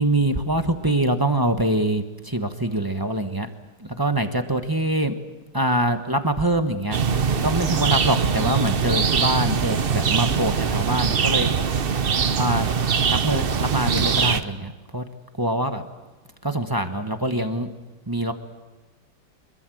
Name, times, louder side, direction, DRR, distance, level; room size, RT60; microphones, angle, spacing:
voice 1, 0.0-3.5 3.8-5.1 5.5-7.0 7.4-11.5 12.4-12.7 13.1-15.0 15.4-15.8 16.4-17.7 18.1-18.3, right 1 dB, 15° right, 7 dB, 0.8 m, -24 dB
sound 1, 6.9-14.4, right 6 dB, 85° right, 0.5 m, -22 dB
25.5 x 22.5 x 7.8 m, 1.2 s
omnidirectional pair, 2.3 m